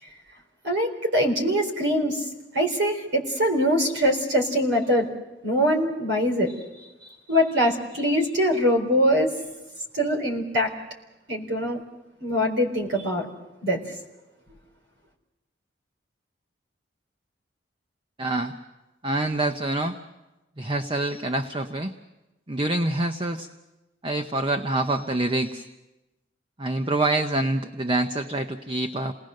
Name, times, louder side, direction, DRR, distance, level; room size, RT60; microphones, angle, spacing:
voice 1, 0.6-2.2 2.5-5.1 5.4-6.5 7.3-9.3 9.9-10.7 11.3-11.8 12.2-13.3 13.6-13.8, equal, 75° right, 2 dB, 4.1 m, -23 dB
voice 2, 18.2-18.5 19.0-20.0 20.6-21.9 22.5-23.5 24.0-25.6 26.6-29.1, right 2 dB, 30° right, 7 dB, 0.8 m, -26 dB
28.0 x 19.5 x 6.5 m, 1.0 s
head